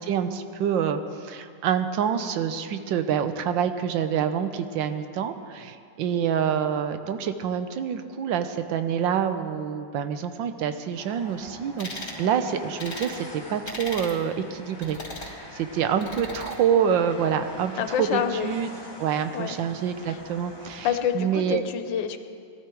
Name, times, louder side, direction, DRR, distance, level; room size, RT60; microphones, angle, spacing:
voice 1, 0.1-15.0 15.2-18.7 19.0-20.9 21.1-21.6, right 8 dB, 85° right, 9 dB, 1.5 m, -27 dB
Train, 10.9-21.4, left 1 dB, 15° left, 1.1 m, -44 dB
sound 1, 11.8-12.2 12.8-13.1 13.7-14.2 14.8-15.3 16.0-16.6, left 1 dB, 35° left, 2.8 m, -37 dB
voice 2, 17.8-18.6 19.3-19.5 20.1-20.2 20.8-22.2, left 9 dB, 85° left, 9 dB, 1.5 m, -27 dB
18.5 x 12.5 x 4.6 m, 2.3 s
omnidirectional pair, 2.0 m